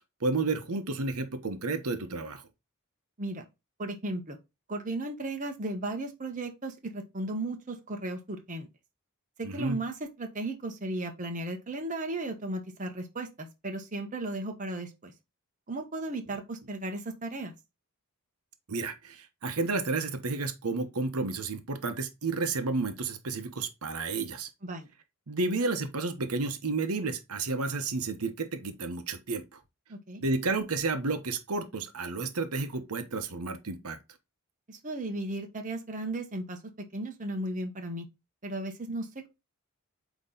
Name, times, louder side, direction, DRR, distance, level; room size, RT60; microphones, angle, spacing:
voice 1, 0.2-2.4 9.4-9.8 18.7-24.5 25.3-29.4 30.2-34.0, right 3 dB, 80° right, 0.9 m, -31 dB
voice 2, 3.8-4.4 4.7-8.7 9.4-15.1 15.7-17.5 24.6-24.9 29.9-30.2 34.7-36.6 36.9-38.1 38.4-39.3, right 2 dB, 35° right, 1.0 m, -35 dB
8.2 x 3.0 x 3.8 m
head